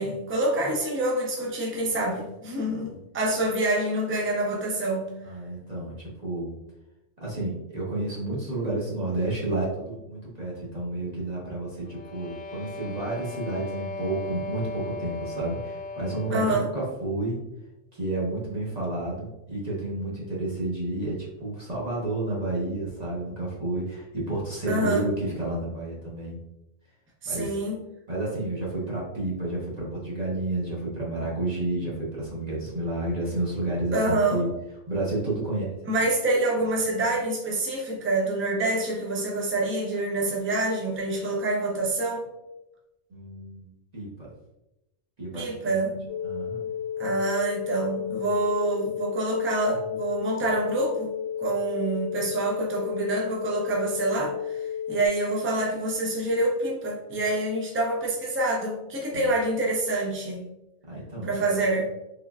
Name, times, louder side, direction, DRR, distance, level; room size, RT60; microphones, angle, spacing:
voice 1, 0.0-5.1 16.3-16.7 24.7-25.0 27.2-27.8 33.9-34.4 35.9-42.2 45.3-46.0 47.0-51.1 51.4-60.4 61.2-61.9, right 2 dB, 15° right, -2 dB, 0.4 m, -26 dB
voice 2, 2.7-3.0 5.2-6.5 7.2-17.4 17.9-26.4 27.2-27.5 28.1-34.5 34.9-35.9 43.1-43.7 43.9-44.3 45.2-45.5 46.2-46.6 59.1-59.3 60.8-61.6, right 2 dB, 35° right, -6 dB, 0.9 m, -31 dB
sound 1, 11.8-16.5, left 3 dB, 85° left, 1.0 m, -37 dB
sound 2, 46.1-55.1, left 8 dB, 65° right, 1.0 m, -32 dB
3.7 x 3.1 x 2.3 m, 0.91 s
omnidirectional pair, 1.3 m